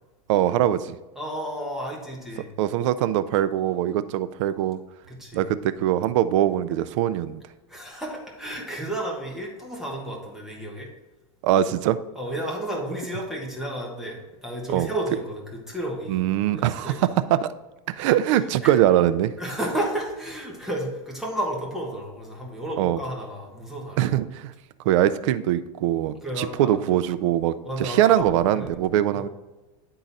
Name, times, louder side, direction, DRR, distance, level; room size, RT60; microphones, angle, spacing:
voice 1, 0.3-1.0 2.6-4.8 5.3-7.4 11.4-12.0 14.7-14.9 16.1-17.5 17.9-19.3 22.8-23.0 24.0-24.5 24.8-29.3, right 12 dB, 65° right, 13 dB, 0.5 m, -22 dB
voice 2, 1.1-2.5 5.1-5.5 7.7-10.9 12.1-17.1 18.6-18.8 19.4-24.0 26.2-26.8 27.6-28.7 29.1-29.3, right 1 dB, ahead, -2 dB, 1.4 m, -32 dB
10.0 x 3.9 x 4.1 m, 1.1 s
supercardioid pair, 145°, 17 cm